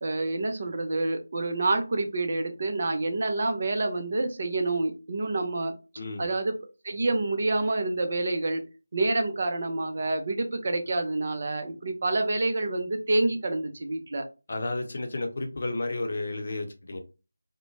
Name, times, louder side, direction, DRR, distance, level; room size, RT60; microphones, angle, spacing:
voice 1, 0.0-5.7 6.2-6.6 6.8-8.6 8.9-14.3, right 2 dB, 45° right, 0.5 m, -27 dB
voice 2, 6.0-6.3 14.5-17.0, left 2 dB, 50° left, 0.7 m, -32 dB
2.9 x 2.0 x 2.6 m
figure-of-eight pair, 165°, 0 cm